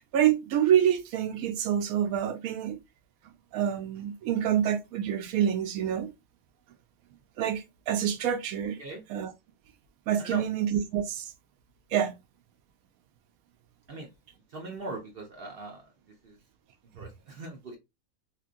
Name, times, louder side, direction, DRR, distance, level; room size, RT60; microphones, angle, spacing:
voice 1, 0.1-2.8 3.5-6.1 7.4-8.8 9.1-9.3 10.1-11.3 11.9-12.1, right 9 dB, 80° right, 1.0 m, -27 dB
voice 2, 14.5-15.9 16.2-16.4 16.9-17.8, right 2 dB, 55° right, 0.7 m, -40 dB
2.9 x 2.5 x 2.4 m
omnidirectional pair, 1.5 m